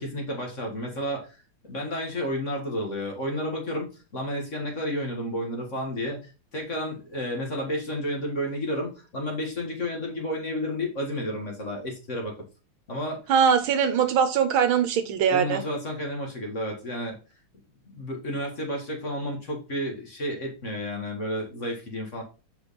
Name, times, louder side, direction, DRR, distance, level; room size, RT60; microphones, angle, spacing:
voice 1, 0.0-1.4 1.6-12.4 12.9-13.2 15.3-17.2 17.9-22.2, equal, 35° left, 1.8 m, -31 dB
voice 2, 13.3-15.6, right 7 dB, 70° right, 1.6 m, -22 dB
6.2 x 5.1 x 4.1 m
omnidirectional pair, 2.3 m